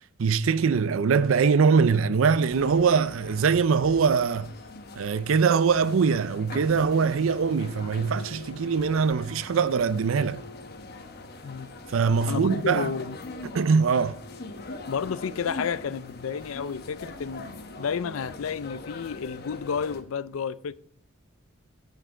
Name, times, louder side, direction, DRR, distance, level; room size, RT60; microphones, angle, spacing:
voice 1, 0.2-4.5 5.0-10.4 11.9-12.9 13.5-14.2, right 5 dB, 70° right, 0.4 m, -22 dB
sound 1, 2.5-20.0, left 2 dB, 50° left, 1.0 m, -42 dB
voice 2, 12.3-13.2 14.9-20.7, left 6 dB, 80° left, 0.4 m, -31 dB
10.5 x 7.1 x 3.8 m
head